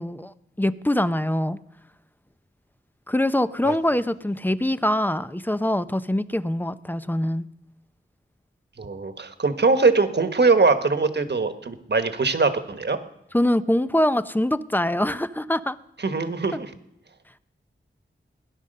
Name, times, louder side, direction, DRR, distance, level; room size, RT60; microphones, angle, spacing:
voice 1, 0.0-1.6 3.1-7.5 13.3-15.8 16.5-16.6, left 1 dB, 10° left, 13 dB, 0.5 m, -24 dB
voice 2, 8.8-13.0 16.0-16.7, right 4 dB, 55° right, 9 dB, 1.3 m, -22 dB
18.0 x 10.5 x 6.6 m, 0.83 s
wide cardioid pair, 75°, 21 cm